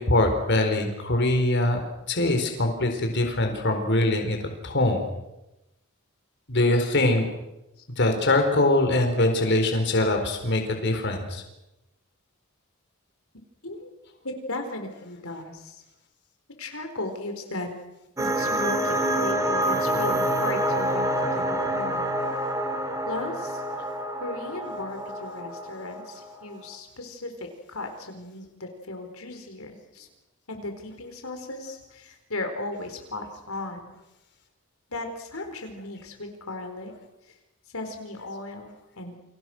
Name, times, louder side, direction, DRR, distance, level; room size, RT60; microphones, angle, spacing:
voice 1, 0.0-1.8 2.1-4.4 4.6-5.0 6.5-7.2 8.0-11.4, left 2 dB, 55° left, 5 dB, 4.4 m, -23 dB
voice 2, 14.2-15.8 16.6-17.7 18.2-22.1 23.0-23.6 24.2-30.1 30.5-33.9 34.9-36.9 37.2-37.4 37.7-39.2, left 2 dB, 80° left, 5 dB, 4.4 m, -36 dB
sound 1, 18.2-26.4, right 1 dB, 15° right, 3.3 m, -27 dB
30.0 x 27.5 x 6.2 m, 0.94 s
head